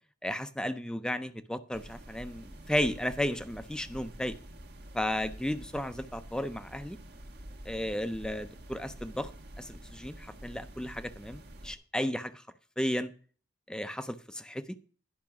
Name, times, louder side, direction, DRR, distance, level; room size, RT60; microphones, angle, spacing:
voice 1, 0.2-4.4 4.9-7.0 7.7-9.3 9.6-12.4 12.8-13.1 13.7-14.8, left 1 dB, 5° left, 12 dB, 0.4 m, -34 dB
sound 1, 1.7-11.7, right 1 dB, 55° right, 1.2 m, -48 dB
10.5 x 5.7 x 5.9 m, 0.42 s
head